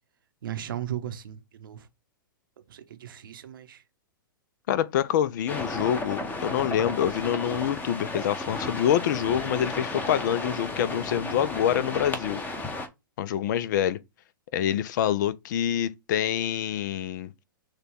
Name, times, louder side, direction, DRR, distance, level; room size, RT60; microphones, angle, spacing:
voice 1, 0.4-1.9 2.7-3.8, right 11 dB, 70° right, 0.8 m, -36 dB
voice 2, 4.7-12.4 13.2-14.0 14.5-17.4, left 10 dB, 55° left, 0.5 m, -26 dB
sound 1, 5.5-12.9, left 2 dB, 15° left, 1.0 m, -33 dB
6.5 x 2.3 x 3.5 m
hypercardioid pair, 110°, 12 cm